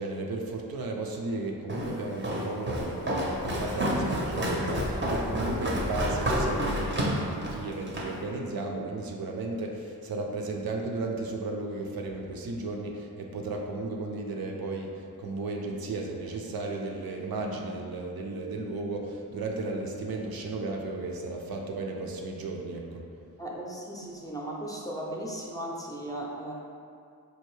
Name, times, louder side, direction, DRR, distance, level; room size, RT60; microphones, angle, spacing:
voice 1, 0.0-23.2, right 2 dB, 70° right, 1 dB, 0.5 m, -34 dB
Walk footsteps, 1.7-8.2, equal, 30° right, 0.6 m, -29 dB
voice 2, 23.4-26.5, right 1 dB, 10° left, -4 dB, 0.5 m, -36 dB
4.4 x 2.6 x 3.1 m, 2.4 s
wide cardioid pair, 95°, 37 cm